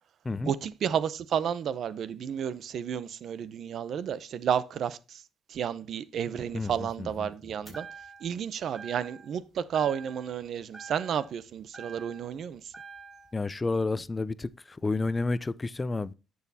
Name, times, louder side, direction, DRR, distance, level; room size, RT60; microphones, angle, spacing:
voice 1, 0.4-5.2 5.5-7.9 8.2-12.7, right 8 dB, 65° right, 0.6 m, -31 dB
voice 2, 7.0-7.3 13.3-16.1, left 3 dB, 25° left, 0.4 m, -30 dB
sound 1, 7.7-8.4 8.7-9.4 9.7-10.4 10.7-12.4 12.7-13.4, right 5 dB, 10° right, 5.2 m, -46 dB
10.5 x 6.3 x 2.7 m
cardioid pair, 90°, 0 cm